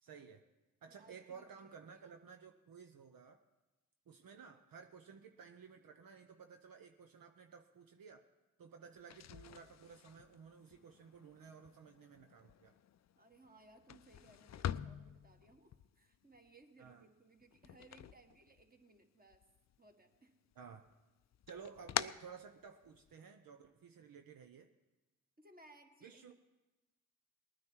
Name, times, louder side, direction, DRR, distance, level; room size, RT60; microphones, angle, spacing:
voice 1, 0.0-0.4 0.8-3.4 4.1-8.3 8.6-12.7 16.8-17.1 20.6-20.8 21.5-24.7 26.0-26.3, right 6 dB, 70° right, 6 dB, 0.8 m, -55 dB
voice 2, 0.9-1.5 1.9-2.0 13.2-19.4 19.8-20.4 25.4-26.3, right 2 dB, 25° right, 5 dB, 1.6 m, -63 dB
sound 1, 9.0-19.0 19.3-20.1 20.5-23.1, left 10 dB, 50° left, 0.4 m, -46 dB
19.5 x 9.4 x 4.6 m, 1.1 s
supercardioid pair, 40°, 36 cm